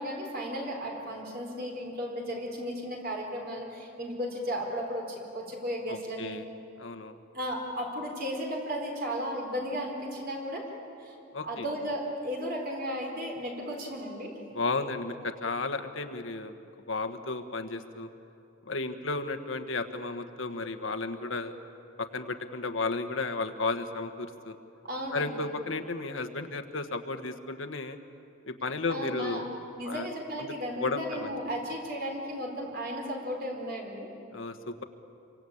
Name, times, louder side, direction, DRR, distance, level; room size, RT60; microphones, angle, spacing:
voice 1, 0.0-6.4 7.3-10.6 11.0-14.4 24.8-25.3 28.9-29.4 29.8-34.1, equal, 50° right, 1 dB, 4.3 m, -35 dB
voice 2, 5.9-6.5 6.8-7.1 11.3-11.6 14.5-16.5 16.9-18.1 18.7-21.5 22.0-24.6 25.1-28.0 28.5-29.4 29.8-30.1 30.4-30.5 30.8-31.3 34.3-34.5, left 3 dB, 70° left, 8 dB, 1.5 m, -33 dB
28.0 x 24.5 x 8.7 m, 2.8 s
head